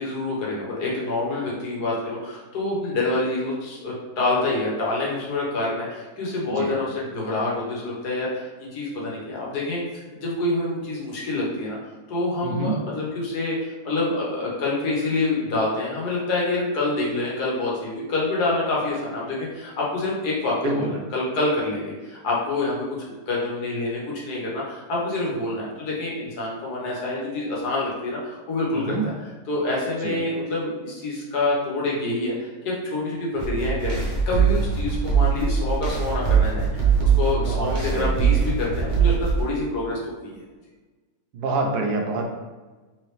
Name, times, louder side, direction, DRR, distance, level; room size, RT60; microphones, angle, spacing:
voice 1, 0.0-9.8 10.1-11.8 12.1-22.8 23.3-36.7 37.0-40.4, left 2 dB, 75° left, -4 dB, 1.6 m, -27 dB
voice 2, 12.4-12.8 20.6-20.7 28.9-29.0 30.0-30.2 37.4-38.4 41.3-42.3, right 3 dB, 80° right, 2 dB, 1.2 m, -27 dB
sound 1, 33.4-39.4, right 6 dB, 35° right, 0.9 m, -22 dB
3.7 x 3.2 x 3.2 m, 1.2 s
omnidirectional pair, 1.7 m